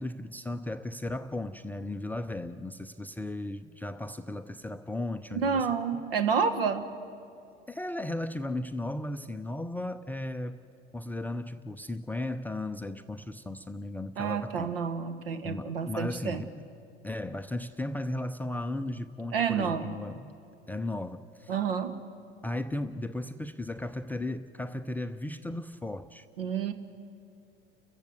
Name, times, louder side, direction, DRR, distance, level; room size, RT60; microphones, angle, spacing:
voice 1, 0.0-5.7 7.7-10.6 10.9-14.7 15.4-16.5 17.0-20.3 20.7-21.5 22.4-26.3, left 1 dB, 5° left, 0.4 m, -35 dB
voice 2, 5.3-6.8 14.2-16.4 19.3-20.0 21.5-21.9 26.4-26.7, right 6 dB, 65° right, 1.4 m, -29 dB
30.0 x 15.0 x 7.9 m
figure-of-eight pair, 80°, 30 cm